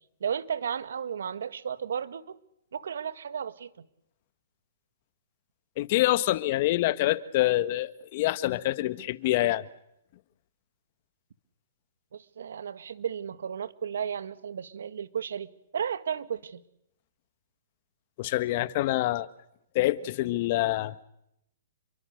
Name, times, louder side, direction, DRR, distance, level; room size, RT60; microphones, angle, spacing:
voice 1, 0.2-2.4 2.7-3.7 12.1-16.6, right 8 dB, 75° right, 14 dB, 1.8 m, -34 dB
voice 2, 5.8-9.7 18.2-19.3 19.8-21.0, left 16 dB, 45° left, 14 dB, 1.6 m, -26 dB
29.5 x 23.5 x 6.6 m, 0.78 s
hypercardioid pair, 135°, 0 cm